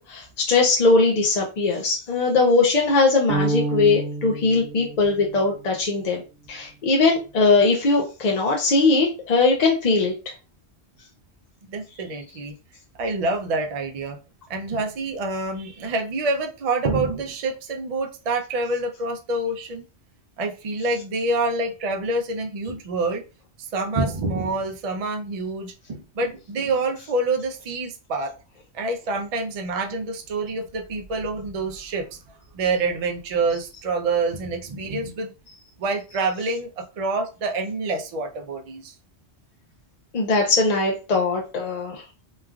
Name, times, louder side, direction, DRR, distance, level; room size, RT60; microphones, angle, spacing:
voice 1, 0.1-6.2 6.5-10.1 40.1-42.0, left 3 dB, 50° left, 0 dB, 0.5 m, -20 dB
sound 1, 3.3-5.6, right 3 dB, 90° right, 0.9 m, -28 dB
voice 2, 11.7-12.5 13.0-14.2 14.5-19.8 20.4-23.2 23.6-28.3 28.7-32.2 32.5-35.3 35.8-38.9, right 3 dB, 55° right, 3 dB, 0.4 m, -27 dB
3.0 x 2.3 x 2.3 m, 0.32 s
omnidirectional pair, 1.2 m